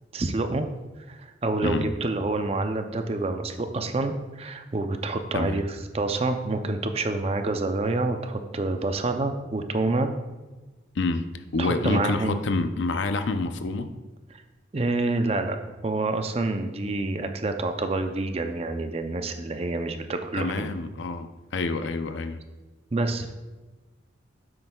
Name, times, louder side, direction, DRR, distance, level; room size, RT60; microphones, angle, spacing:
voice 1, 0.1-0.7 1.1-10.1 11.6-12.4 14.3-14.4 14.7-15.6 15.8-20.7 22.9-23.3, right 2 dB, 30° right, 7 dB, 0.5 m, -27 dB
voice 2, 1.6-1.9 5.3-5.6 10.9-11.2 11.5-13.9 20.3-22.4, left 3 dB, 70° left, 9 dB, 0.5 m, -27 dB
9.8 x 7.7 x 2.3 m, 1.2 s
head